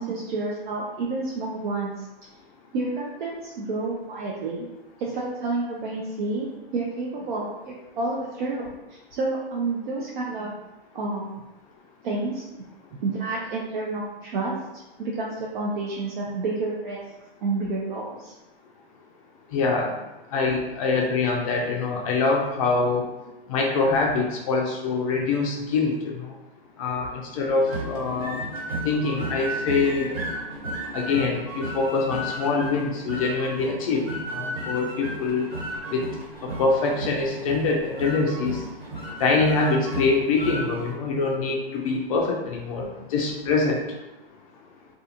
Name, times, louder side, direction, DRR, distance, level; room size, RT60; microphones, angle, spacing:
voice 1, 0.0-1.9 2.7-4.7 5.0-10.5 10.9-11.3 12.0-12.6 13.0-17.0 17.4-18.3 27.1-27.2, right 3 dB, 55° right, -4 dB, 0.5 m, -29 dB
voice 2, 19.5-19.9 20.3-23.0 23.5-26.1 26.8-27.1 27.3-28.4 28.8-30.2 30.9-34.0 34.3-35.4 35.9-36.0 36.4-38.6 39.2-42.9 43.1-43.8, left 4 dB, 35° left, 0 dB, 0.4 m, -24 dB
sound 1, 27.6-40.9, right 1 dB, 70° right, 1.5 m, -34 dB
2.4 x 2.4 x 2.7 m, 1.0 s
hypercardioid pair, 120°, 30 cm